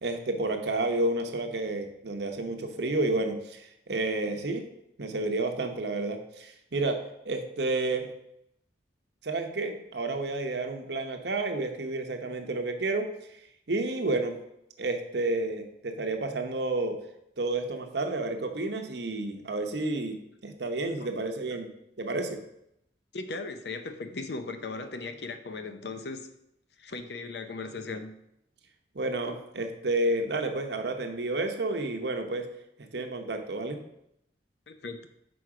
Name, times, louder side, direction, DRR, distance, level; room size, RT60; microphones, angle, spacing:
voice 1, 0.0-4.6 5.0-7.0 7.2-8.1 9.2-13.1 13.7-14.4 14.8-17.0 17.4-20.2 20.4-21.7 22.0-22.4 28.9-32.5 32.9-33.8, right 2 dB, 65° right, 5 dB, 0.9 m, -30 dB
voice 2, 23.1-26.3 26.8-28.2 34.7-35.0, left 3 dB, 65° left, 8 dB, 0.6 m, -37 dB
6.1 x 4.7 x 4.8 m, 0.79 s
head